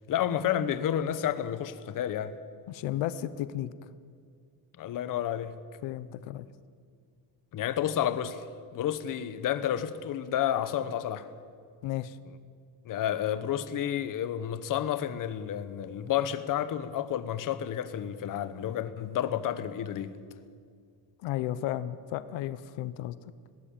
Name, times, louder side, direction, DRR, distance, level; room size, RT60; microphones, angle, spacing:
voice 1, 0.1-2.3 4.8-5.6 7.5-8.5 8.7-11.3 12.8-20.2, left 10 dB, 45° left, 1.1 m, -30 dB
voice 2, 2.7-3.7 5.8-6.5 11.8-12.2 21.2-23.2, left 13 dB, 90° left, 1.0 m, -33 dB
20.0 x 17.0 x 8.7 m
cardioid pair, 170°, 44 cm